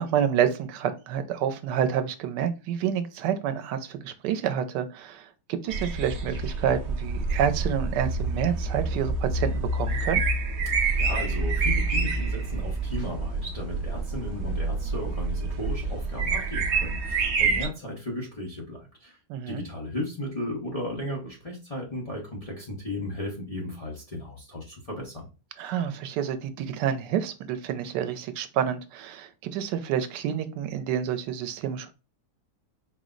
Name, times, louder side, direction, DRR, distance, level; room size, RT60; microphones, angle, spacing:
voice 1, 0.0-10.2 19.3-19.6 25.6-31.9, right 9 dB, 90° right, 1.2 m, -28 dB
sound 1, 5.7-17.7, right 3 dB, 60° right, 0.8 m, -27 dB
voice 2, 10.6-19.2 19.5-25.3, left 1 dB, 30° left, 0.7 m, -35 dB
4.6 x 2.0 x 3.7 m
omnidirectional pair, 1.8 m